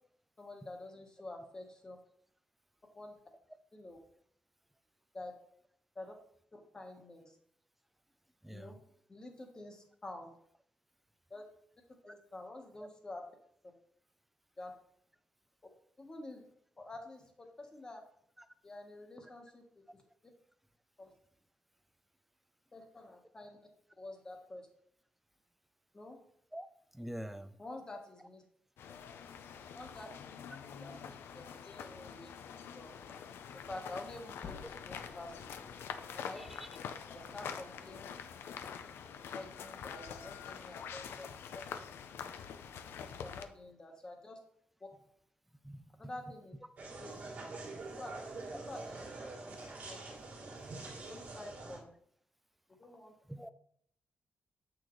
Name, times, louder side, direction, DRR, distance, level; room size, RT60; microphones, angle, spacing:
voice 1, 0.4-2.0 2.9-3.2 3.7-4.0 5.1-5.3 5.9-6.1 6.5-7.4 8.5-8.8 9.1-10.3 11.3-11.4 12.0-13.2 14.6-14.7 16.0-16.4 16.8-18.0 18.6-20.0 21.0-21.1 22.7-23.6 24.0-24.7 25.9-26.2 27.6-28.4 29.7-30.1 30.7-32.3 32.7-33.1 33.5-35.5 36.1-36.4 37.1-38.1 39.3-41.3 41.5-41.9 43.2-44.4 44.8-44.9 46.0-46.5 47.0-47.2 48.0-48.1 48.7-49.0 49.5-50.0 51.1-51.9 52.8-53.1, left 2 dB, 20° left, 3 dB, 1.3 m, -48 dB
voice 2, 26.9-27.6 36.4-36.7 45.6-46.1 48.5-48.6 53.3-53.5, equal, 5° right, 11 dB, 0.4 m, -45 dB
sound 1, 28.8-43.4, left 7 dB, 85° left, 0.6 m, -46 dB
sound 2, 34.4-39.2, left 6 dB, 45° left, 0.6 m, -55 dB
sound 3, 46.8-51.8, right 3 dB, 50° right, 2.0 m, -45 dB
8.5 x 6.2 x 3.1 m, 0.66 s
wide cardioid pair, 175°, 4 cm